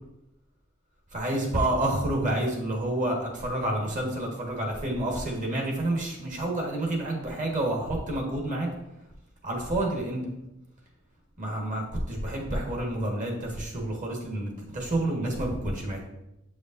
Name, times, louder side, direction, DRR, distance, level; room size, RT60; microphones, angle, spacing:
voice 1, 1.1-8.7 9.4-10.3 11.4-16.0, right 1 dB, 40° right, 0 dB, 1.4 m, -29 dB
7.9 x 5.1 x 2.6 m, 0.88 s
head